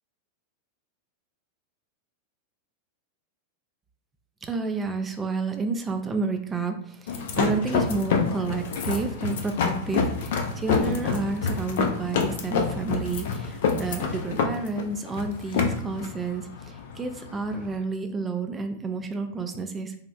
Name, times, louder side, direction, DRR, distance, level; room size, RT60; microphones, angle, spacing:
voice 1, 4.4-20.0, right 3 dB, 15° right, 6 dB, 0.3 m, -30 dB
sound 1, 7.1-17.8, left 5 dB, 55° left, 0.4 m, -27 dB
2.9 x 2.4 x 2.3 m, 0.64 s
figure-of-eight pair, 90°, 0 cm